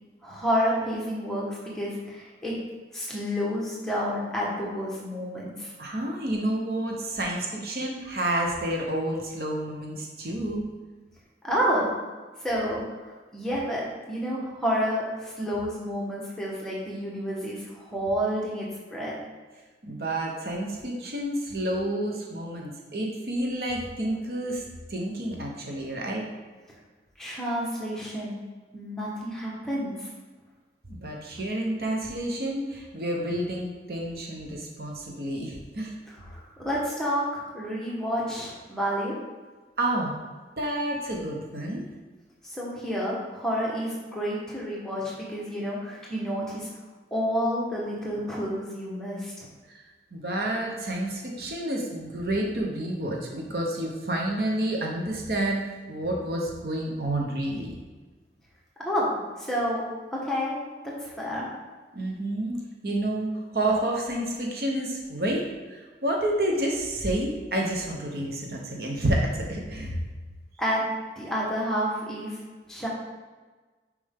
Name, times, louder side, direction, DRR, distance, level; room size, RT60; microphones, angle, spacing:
voice 1, 0.2-2.5 2.9-5.7 11.4-11.9 12.4-12.8 13.3-13.8 14.1-19.2 27.2-28.5 28.7-30.1 36.3-39.1 42.4-46.7 47.1-49.5 58.8-59.1 59.4-59.8 60.1-60.5 61.0-61.5 70.6-70.8 71.1-72.4 72.7-72.9, equal, 5° left, -5 dB, 1.4 m, -29 dB
voice 2, 5.8-10.6 19.8-24.6 24.9-26.2 30.9-35.9 39.8-40.1 40.6-41.8 49.7-49.8 50.1-57.8 61.9-70.0, right 1 dB, 60° right, 0 dB, 1.1 m, -29 dB
6.6 x 5.1 x 3.7 m, 1.3 s
head